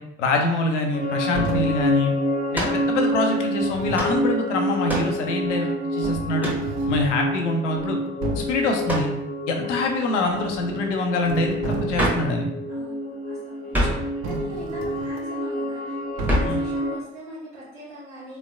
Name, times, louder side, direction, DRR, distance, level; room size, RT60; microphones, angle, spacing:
voice 1, 0.2-2.1 2.5-6.5 6.9-8.0 8.4-9.1 9.5-12.5 13.8-14.0 16.4-16.6, left 2 dB, 80° left, 3 dB, 0.5 m, -25 dB
sound 1, 0.9-17.0, equal, 25° left, 0.8 m, -28 dB
sound 2, 1.3-1.9 3.6-4.2 5.5-5.6 6.0-7.2 7.7-7.9 8.2-8.7 10.2-10.9 11.2-12.3 14.2-15.2 16.2-16.7, right 3 dB, 60° right, 0.5 m, -33 dB
sound 3, 2.5-2.8 3.9-4.2 4.9-5.2 6.4-6.7 8.9-9.2 11.9-12.3 13.7-14.1 16.3-16.6, equal, 5° right, 1.0 m, -25 dB
voice 2, 9.5-9.8 12.7-14.0 14.2-18.4, right 1 dB, 85° right, -8 dB, 1.2 m, -42 dB
3.3 x 3.0 x 2.4 m, 0.83 s
figure-of-eight pair, 45°, 35 cm